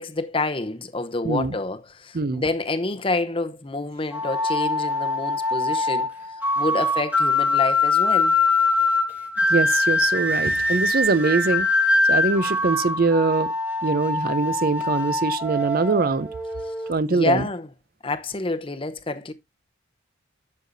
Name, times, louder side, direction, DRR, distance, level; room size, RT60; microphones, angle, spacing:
voice 1, 0.0-6.1 6.6-8.3 17.1-17.7 18.0-19.3, left 2 dB, 25° left, 0.7 m, -28 dB
voice 2, 1.2-1.6 2.1-2.4 9.5-11.7 12.1-13.5 13.8-16.3 16.9-17.5, right 3 dB, 45° right, 0.6 m, -23 dB
sound 1, 4.1-16.9, left 2 dB, 10° right, 1.4 m, -23 dB
12.0 x 6.6 x 2.6 m
head